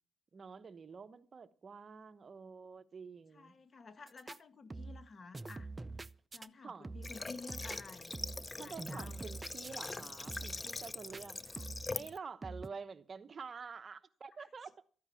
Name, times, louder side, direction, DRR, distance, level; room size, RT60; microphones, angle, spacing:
voice 1, 0.3-3.5 6.6-6.9 8.6-11.4 11.9-14.8, right 5 dB, 50° right, 1.0 m, -48 dB
voice 2, 3.3-5.7 6.3-8.1 8.6-9.2 11.5-11.7 14.4-14.5, left 4 dB, 45° left, 1.5 m, -52 dB
sound 1, 4.1-4.4 4.7-5.1 5.3-6.5 6.8-7.2 7.5-8.5 8.8-10.0 10.3-10.7 11.1-11.9 12.4-12.7, right 3 dB, 25° right, 0.6 m, -45 dB
Water / Water tap faucet, 7.0-12.2, left 3 dB, 30° left, 0.6 m, -43 dB
13.5 x 9.6 x 7.0 m
cardioid pair, 70°, 0 cm